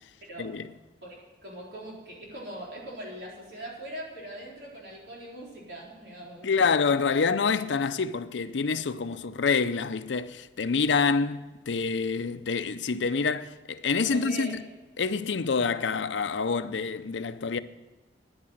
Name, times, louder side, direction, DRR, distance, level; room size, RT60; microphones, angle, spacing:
voice 1, 0.4-0.7 6.4-14.6 15.0-17.6, left 5 dB, 90° left, 0.6 m, -27 dB
voice 2, 1.0-6.5 14.1-14.5, right 1 dB, 60° right, 4.1 m, -41 dB
10.5 x 9.7 x 7.8 m
head